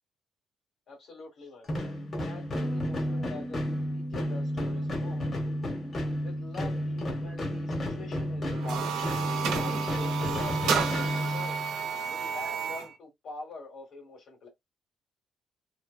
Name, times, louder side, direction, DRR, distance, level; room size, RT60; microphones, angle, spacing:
voice 1, 0.9-5.4 6.2-9.1 9.6-11.7 12.0-14.5, left 3 dB, 65° left, 1.8 m, -45 dB
sound 1, 1.6-11.8, equal, 45° left, 1.3 m, -32 dB
sound 2, 2.5-8.8, equal, 25° left, 0.6 m, -44 dB
sound 3, 8.5-12.9, right 6 dB, 90° right, 0.8 m, -31 dB
3.2 x 2.2 x 2.3 m
cardioid pair, 90°, 0 cm